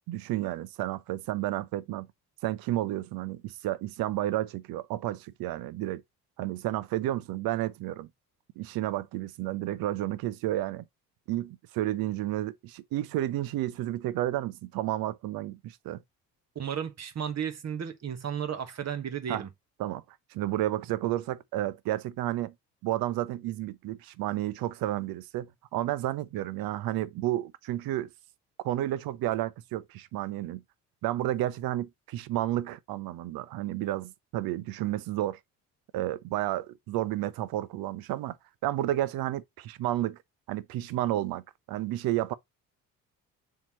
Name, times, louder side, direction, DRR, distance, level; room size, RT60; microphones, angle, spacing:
voice 1, 0.1-2.1 2.4-6.0 6.4-8.1 8.6-10.8 11.3-16.0 19.3-19.4 19.8-20.0 20.3-22.5 22.8-28.1 28.6-30.6 31.0-35.4 35.9-38.4 38.6-40.2 40.5-42.3, right 14 dB, 50° right, 0.8 m, -31 dB
voice 2, 16.5-19.5, right 8 dB, 35° right, 1.4 m, -34 dB
7.0 x 4.8 x 3.0 m
figure-of-eight pair, 50°, 46 cm